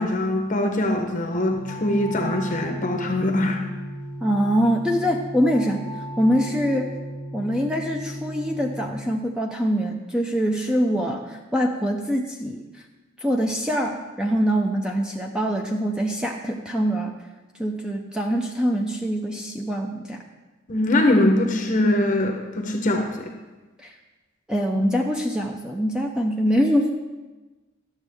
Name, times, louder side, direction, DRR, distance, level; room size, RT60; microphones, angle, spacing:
voice 1, 0.0-3.6 20.7-23.1, left 1 dB, 35° left, 4 dB, 0.7 m, -22 dB
sound 1, 1.5-8.9, right 1 dB, 60° right, 1.6 m, -35 dB
voice 2, 4.2-5.8 6.2-6.9 7.3-12.7 13.2-17.2 17.6-20.2 23.8-23.9 24.5-26.9, equal, 5° right, 1 dB, 0.4 m, -24 dB
11.5 x 7.1 x 3.4 m, 1.2 s
head